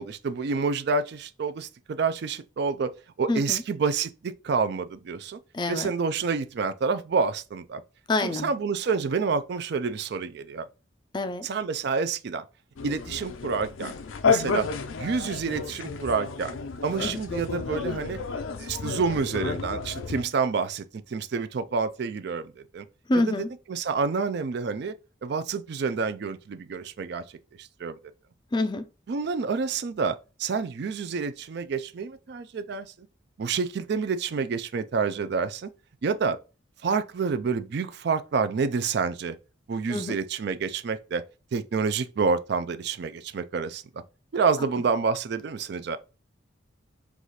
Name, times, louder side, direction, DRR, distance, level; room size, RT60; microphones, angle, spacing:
voice 1, 0.0-2.9 3.2-5.4 5.7-7.8 8.2-10.7 11.4-12.4 12.8-14.0 14.2-14.7 15.0-16.6 16.8-18.2 18.6-22.9 23.1-24.9 25.2-27.2 27.6-28.0 29.1-32.9 33.4-35.7 36.0-36.4 36.8-39.4 39.7-41.2 41.5-43.8 44.3-46.0, right 5 dB, 55° right, 0.4 m, -28 dB
voice 2, 3.3-3.6 5.5-5.9 8.1-8.5 11.1-11.5 17.0-17.2 23.1-23.5 28.5-28.8 39.9-40.2, left 2 dB, 20° left, 0.3 m, -26 dB
sound 1, 12.8-20.2, left 5 dB, 85° left, 0.5 m, -31 dB
4.7 x 2.4 x 4.1 m
head